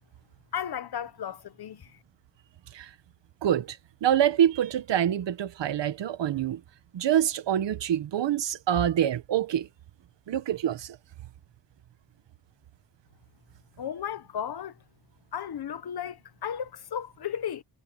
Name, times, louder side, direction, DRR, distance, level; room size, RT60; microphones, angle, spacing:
voice 1, 0.5-2.0 13.8-14.8 15.3-17.6, left 9 dB, 60° left, 1.4 m, -34 dB
voice 2, 3.4-6.6 6.9-9.7 10.3-11.0, right 10 dB, 85° right, 1.3 m, -26 dB
wide cardioid pair, 110°, 42 cm